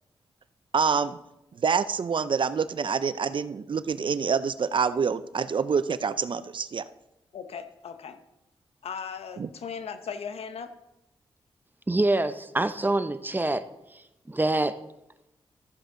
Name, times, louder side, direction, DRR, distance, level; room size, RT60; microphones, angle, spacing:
voice 1, 0.7-1.2 1.5-6.9 9.4-9.5, right 6 dB, 55° right, 14 dB, 0.5 m, -26 dB
voice 2, 7.3-8.2 8.8-10.7, left 6 dB, 80° left, 10 dB, 0.8 m, -37 dB
voice 3, 11.9-13.6 13.9-14.7, right 2 dB, 20° right, 11 dB, 0.7 m, -26 dB
13.0 x 7.7 x 3.8 m, 0.91 s
cardioid pair, 50°, 10 cm